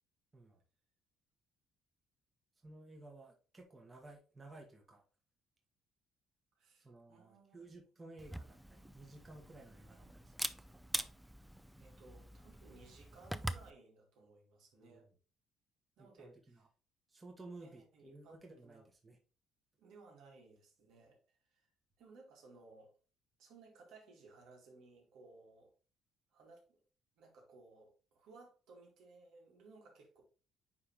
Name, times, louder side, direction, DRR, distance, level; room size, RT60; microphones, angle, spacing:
voice 1, 2.6-5.0 6.8-10.5 14.7-15.1 16.0-16.6 17.1-19.2, right 2 dB, 20° right, 1.4 m, -55 dB
voice 2, 6.6-7.7 7.9-8.1 9.8-10.2 10.9-15.1 16.0-16.7 17.6-18.9 19.8-21.7 22.0-22.9 23.4-25.7 26.3-26.8 27.2-30.2, right 3 dB, 75° right, 2.4 m, -61 dB
Camera, 8.2-13.7, right 1 dB, 5° right, 0.4 m, -44 dB
9.4 x 3.5 x 3.0 m
cardioid pair, 115°, 0 cm